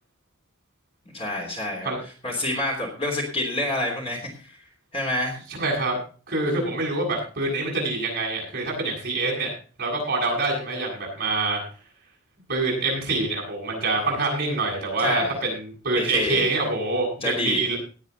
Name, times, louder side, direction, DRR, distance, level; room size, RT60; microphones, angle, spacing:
voice 1, 1.1-1.9 2.2-4.6 4.9-5.4 15.0-15.4 15.9-16.5 17.2-17.6, left 1 dB, 25° left, 0 dB, 3.2 m, -28 dB
voice 2, 5.6-6.0 6.3-9.5 9.8-11.6 12.5-17.8, right 2 dB, 40° right, -2 dB, 7.8 m, -25 dB
19.0 x 8.6 x 3.9 m, 0.38 s
head